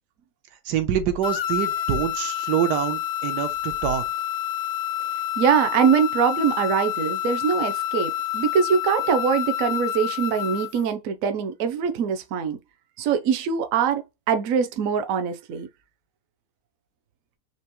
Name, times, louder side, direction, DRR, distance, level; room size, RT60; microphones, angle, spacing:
voice 1, 0.6-4.0, right 9 dB, 80° right, 1.3 m, -25 dB
sound 1, 1.2-10.8, left 12 dB, 60° left, 0.7 m, -28 dB
voice 2, 5.4-12.6 13.0-15.7, right 7 dB, 60° right, 1.0 m, -23 dB
4.5 x 2.8 x 3.0 m
omnidirectional pair, 1.8 m